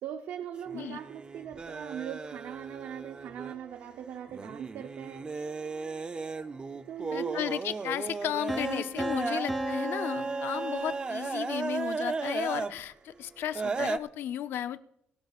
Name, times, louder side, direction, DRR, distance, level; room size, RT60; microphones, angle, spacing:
voice 1, 0.0-5.3 6.9-7.5, right 9 dB, 75° right, 6 dB, 0.9 m, -40 dB
sound 1, 0.6-3.8 4.3-12.8 13.5-14.0, right 4 dB, 25° right, 0.6 m, -35 dB
voice 2, 7.1-14.8, left 11 dB, 70° left, 11 dB, 0.7 m, -34 dB
Piano, 8.5-11.4, equal, ahead, 0.8 m, -36 dB
26.0 x 12.0 x 2.5 m, 0.74 s
cardioid pair, 140°, 4 cm